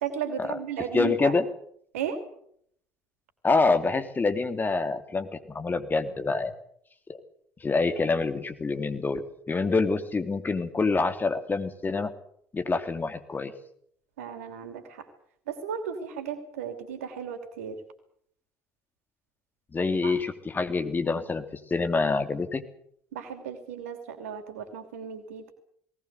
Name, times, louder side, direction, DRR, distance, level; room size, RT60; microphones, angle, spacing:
voice 1, 0.0-1.3 1.9-2.2 14.2-15.1 15.5-17.8 20.0-20.2 23.1-25.5, right 8 dB, 70° right, 8 dB, 3.0 m, -35 dB
voice 2, 0.9-1.4 3.4-6.5 7.6-12.1 12.5-13.5 19.7-21.4 21.7-22.6, left 3 dB, 25° left, 8 dB, 3.0 m, -26 dB
19.5 x 19.5 x 8.2 m, 0.68 s
figure-of-eight pair, 55°, 8 cm